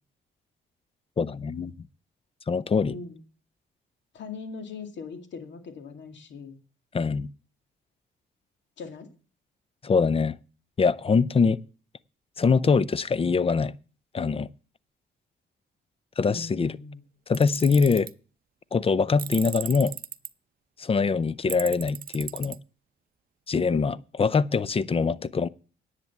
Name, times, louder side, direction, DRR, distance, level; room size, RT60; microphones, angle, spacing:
voice 1, 1.2-1.7 2.5-2.9 6.9-7.3 9.8-10.4 10.8-11.6 12.4-13.7 14.1-14.5 16.2-16.7 17.3-18.1 18.7-19.9 20.8-22.6 23.5-25.5, left 5 dB, 30° left, 0.5 m, -23 dB
voice 2, 2.9-3.2 4.1-6.6 8.8-9.1 16.3-17.0 23.5-23.8 25.2-25.3, left 4 dB, 65° left, 2.3 m, -40 dB
Tools, 17.3-18.1 19.2-20.3 21.5-22.6, right 9 dB, 50° right, 0.6 m, -36 dB
10.5 x 8.2 x 7.1 m
cardioid pair, 90°, 20 cm